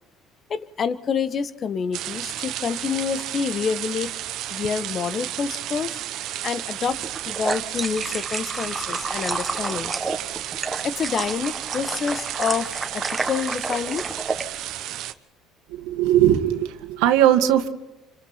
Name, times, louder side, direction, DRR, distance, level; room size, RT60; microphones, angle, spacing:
voice 1, 0.5-4.1 4.5-6.0 6.4-7.0 7.2-10.1 10.8-14.0, left 6 dB, 40° left, 13 dB, 1.3 m, -27 dB
sound 1, 1.9-15.1, right 13 dB, 65° right, 1.1 m, -33 dB
sound 2, 7.0-14.5, right 3 dB, 15° right, 1.6 m, -30 dB
voice 2, 15.7-17.7, right 11 dB, 85° right, 7 dB, 1.9 m, -19 dB
28.5 x 25.5 x 4.4 m, 0.92 s
supercardioid pair, 95°, 0 cm